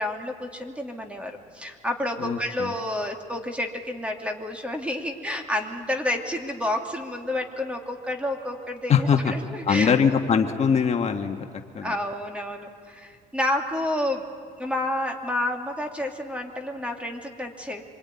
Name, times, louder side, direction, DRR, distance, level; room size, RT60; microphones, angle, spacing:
voice 1, 0.0-10.0 11.8-14.2 14.6-17.8, left 1 dB, 5° right, 3 dB, 2.7 m, -30 dB
voice 2, 2.2-2.7 8.9-9.3 9.6-11.4 11.7-11.9, left 6 dB, 40° left, 3 dB, 1.5 m, -22 dB
26.0 x 23.0 x 9.7 m, 2.2 s
cardioid pair, 110°, 17 cm